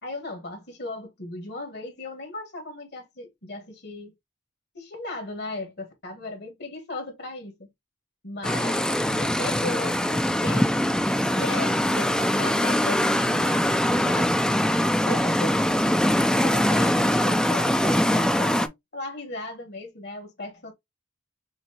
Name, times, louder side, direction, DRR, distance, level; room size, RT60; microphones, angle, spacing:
voice 1, 0.0-4.1 4.7-7.7 8.2-10.8 11.3-14.4 14.8-20.7, left 2 dB, 60° left, 1.7 m, -37 dB
sound 1, 8.4-18.7, equal, 5° left, 0.4 m, -22 dB
5.7 x 2.8 x 2.8 m
head